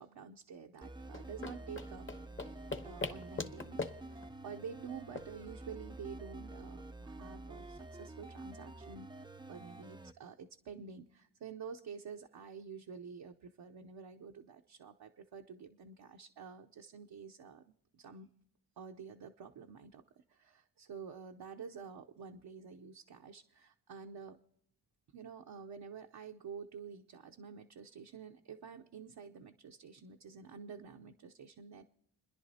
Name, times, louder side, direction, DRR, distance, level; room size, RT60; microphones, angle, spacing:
voice 1, 0.0-2.1 2.4-2.6 2.8-18.3 18.8-24.4 25.1-31.8, right 6 dB, 65° right, 2 dB, 0.8 m, -49 dB
sound 1, 0.8-10.1, right 2 dB, 10° right, 0.6 m, -48 dB
sound 2, 1.0-6.2, left 4 dB, 30° left, 1.1 m, -44 dB
30.0 x 10.5 x 2.8 m, 0.70 s
cardioid pair, 55°, 42 cm